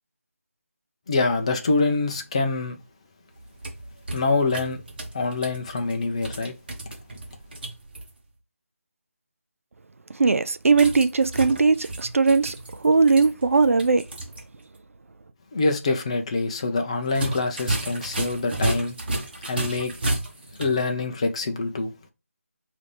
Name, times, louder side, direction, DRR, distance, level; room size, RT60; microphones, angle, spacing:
voice 1, 1.1-2.8 4.1-4.8 5.1-6.5 15.5-19.0 19.5-19.9 20.6-21.9, left 3 dB, 25° left, 0.6 m, -25 dB
sound 1, 3.4-8.1 10.7-14.4 14.7-14.8 17.1-20.8, right 2 dB, 40° right, 1.1 m, -33 dB
voice 2, 10.2-14.0, right 4 dB, 70° right, 0.4 m, -19 dB
5.0 x 2.8 x 3.3 m
figure-of-eight pair, 170°, 8 cm